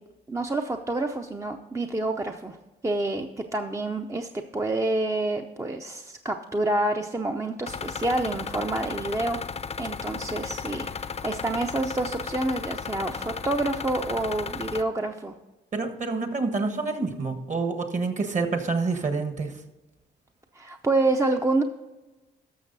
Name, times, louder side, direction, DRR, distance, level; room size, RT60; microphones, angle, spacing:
voice 1, 0.3-2.6 2.8-9.4 9.8-15.3 20.5-21.6, right 2 dB, 15° right, 4 dB, 0.6 m, -28 dB
sound 1, 7.7-14.8, left 6 dB, 30° left, 0.6 m, -34 dB
voice 2, 15.7-19.6, right 3 dB, 40° right, 7 dB, 1.4 m, -28 dB
12.0 x 6.7 x 4.0 m, 1.1 s
cardioid pair, 90°, 20 cm